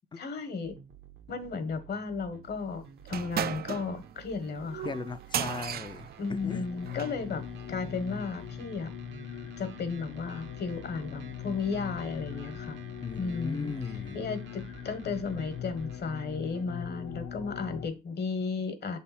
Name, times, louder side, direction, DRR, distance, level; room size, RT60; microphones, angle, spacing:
voice 1, 0.2-0.8 1.3-4.9 6.2-7.4 7.7-8.9 9.6-12.8 13.2-13.7 14.1-19.0, left 4 dB, 55° left, 1.3 m, -34 dB
sound 1, 0.6-17.4, right 7 dB, 70° right, 0.9 m, -51 dB
sound 2, 3.1-7.2, right 10 dB, 50° right, 0.4 m, -36 dB
voice 2, 4.8-6.7 9.4-9.5 13.0-14.2, left 4 dB, 25° left, 0.5 m, -38 dB
sound 3, 6.4-17.9, left 9 dB, 85° left, 1.0 m, -41 dB
6.5 x 3.5 x 4.2 m
cardioid pair, 90°, 20 cm